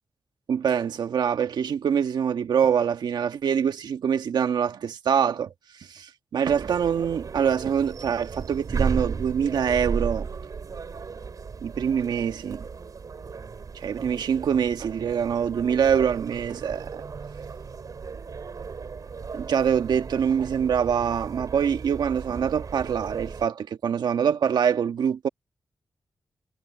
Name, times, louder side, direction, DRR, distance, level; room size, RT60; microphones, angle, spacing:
voice 1, 0.5-5.5 5.9-10.3 11.6-12.7 13.7-17.0 19.3-25.3, right 7 dB, 85° right, 1.6 m, -24 dB
sound 1, 6.4-23.5, right 5 dB, 55° right, 4.3 m, -35 dB
cardioid pair, 80°, 7 cm